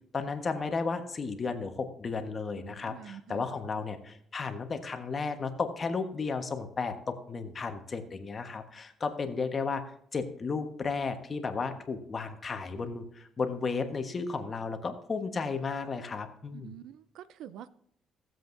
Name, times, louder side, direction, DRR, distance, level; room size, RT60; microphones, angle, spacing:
voice 1, 0.1-9.8 10.1-16.7, left 4 dB, 40° left, 6 dB, 1.2 m, -34 dB
voice 2, 2.6-3.5 16.5-17.7, right 10 dB, 85° right, 16 dB, 0.4 m, -46 dB
16.5 x 7.7 x 2.6 m, 0.67 s
cardioid pair, 90°, 0 cm